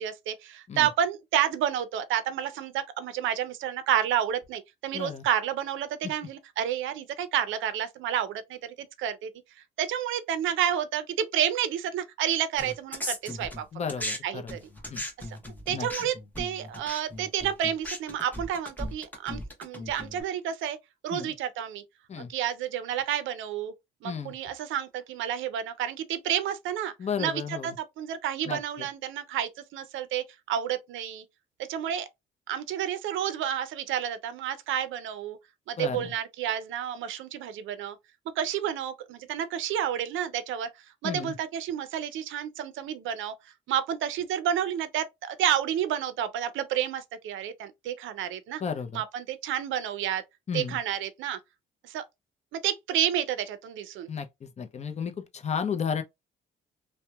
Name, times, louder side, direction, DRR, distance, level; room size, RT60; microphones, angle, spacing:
voice 1, 0.0-9.3 9.8-13.6 14.2-14.6 15.3-15.4 15.7-20.8 21.0-21.8 22.3-23.7 24.0-26.9 27.2-31.2 31.7-32.1 32.5-35.4 35.7-38.0 38.4-40.7 41.0-43.3 43.7-48.6 48.9-50.2 50.5-51.4 51.8-52.0 52.5-54.1, right 10 dB, 80° right, 0.5 m, -30 dB
voice 2, 4.9-5.3 13.7-14.5 14.9-15.0 15.7-15.9 21.1-21.3 22.1-22.3 24.0-24.3 27.0-27.8 28.4-28.9 35.8-36.1 41.0-41.4 48.6-49.0 50.5-50.8 54.1-56.0, left 6 dB, 35° left, 0.5 m, -33 dB
sound 1, 12.6-14.2 14.5-20.2, left 1 dB, 10° left, 0.9 m, -37 dB
2.8 x 2.1 x 2.2 m
cardioid pair, 90°, 20 cm